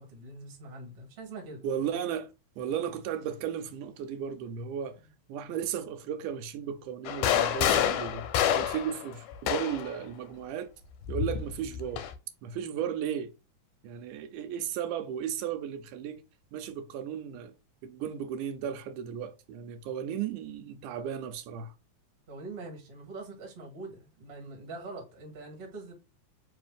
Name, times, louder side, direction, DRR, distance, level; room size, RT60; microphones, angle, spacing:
voice 1, 0.0-1.6 22.3-25.9, right 2 dB, 35° right, 1.0 m, -43 dB
voice 2, 1.6-2.3 2.6-5.0 5.3-8.3 8.5-10.7 11.1-12.1 12.4-13.3 13.8-16.2 16.5-17.5 17.8-21.7, right 8 dB, 85° right, 2.2 m, -35 dB
sound 1, 7.1-10.0 11.1-12.1, left 10 dB, 85° left, 2.1 m, -28 dB
4.8 x 2.6 x 3.4 m
omnidirectional pair, 3.6 m